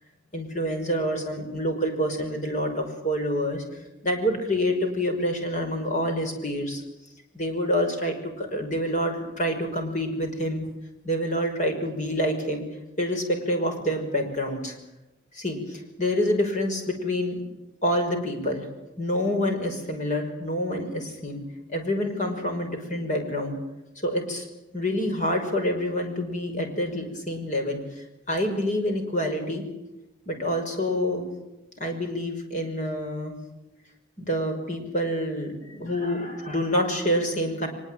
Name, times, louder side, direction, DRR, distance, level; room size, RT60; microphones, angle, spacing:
voice 1, 0.3-3.6 4.0-6.8 7.3-10.7 11.0-12.6 13.0-14.7 15.3-17.4 17.8-18.7 19.0-21.4 21.7-23.6 24.0-24.5 24.7-29.6 30.3-31.3 31.8-33.3 34.2-37.7, equal, 40° left, 4 dB, 5.8 m, -27 dB
24.0 x 21.5 x 9.1 m, 0.96 s
head